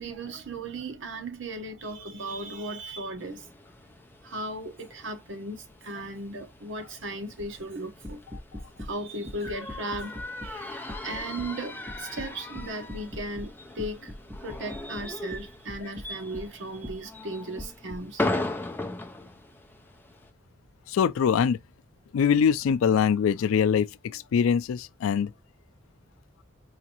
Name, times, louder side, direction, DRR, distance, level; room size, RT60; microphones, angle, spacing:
voice 1, 0.0-3.4 4.2-8.2 8.8-10.2 10.4-14.1 14.4-18.2, right 1 dB, 65° right, 0.9 m, -36 dB
sound 1, 3.2-20.3, left 2 dB, 10° left, 0.5 m, -38 dB
sound 2, 7.4-7.6 8.0-8.9 9.3-10.6 10.9-11.5 11.9-13.5 13.8-16.5 16.8-17.0 17.6-18.0, left 1 dB, 25° right, 1.3 m, -40 dB
voice 2, 20.9-21.6 22.1-25.3, left 7 dB, 90° left, 0.3 m, -23 dB
4.9 x 2.6 x 2.8 m
head